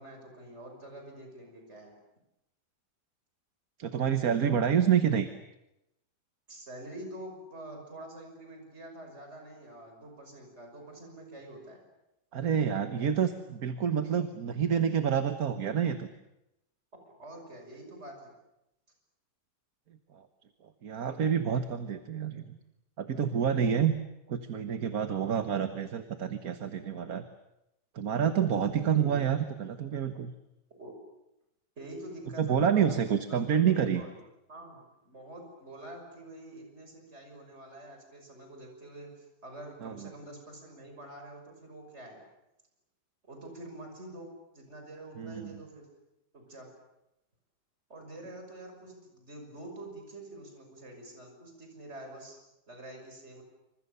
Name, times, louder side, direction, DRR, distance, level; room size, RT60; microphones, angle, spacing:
voice 1, 0.0-1.9 6.5-11.8 17.1-18.3 25.1-25.4 29.0-29.2 30.8-30.9 31.8-34.2 34.5-42.2 43.3-45.9 46.3-46.7 47.9-52.4 52.7-53.4, right 1 dB, 40° right, 3 dB, 6.4 m, -46 dB
voice 2, 3.8-5.3 12.3-16.1 20.1-20.2 20.8-22.6 23.0-23.9 24.3-27.2 27.9-30.3 32.4-34.0 39.8-39.9 45.2-45.5, right 8 dB, 60° right, 8 dB, 1.7 m, -28 dB
27.5 x 26.0 x 6.9 m, 0.89 s
omnidirectional pair, 1.8 m